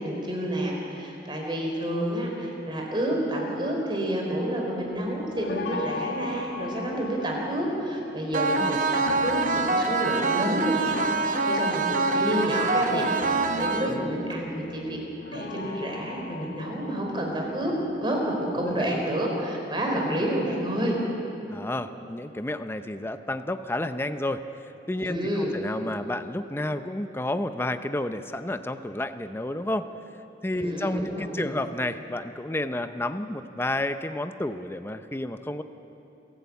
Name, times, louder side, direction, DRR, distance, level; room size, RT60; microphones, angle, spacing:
voice 1, 0.0-15.0 15.3-17.7 18.0-21.0 25.0-25.6 30.5-31.5, right 1 dB, 25° right, 0 dB, 4.0 m, -29 dB
sound 1, 4.8-18.9, left 2 dB, 90° left, 1.5 m, -39 dB
sound 2, 8.3-14.3, right 3 dB, 45° right, 1.0 m, -25 dB
voice 2, 18.5-18.9 20.0-20.3 21.5-24.4 24.9-29.9 30.4-35.6, left 1 dB, 15° left, 9 dB, 0.6 m, -31 dB
28.0 x 11.5 x 8.3 m, 2.9 s
head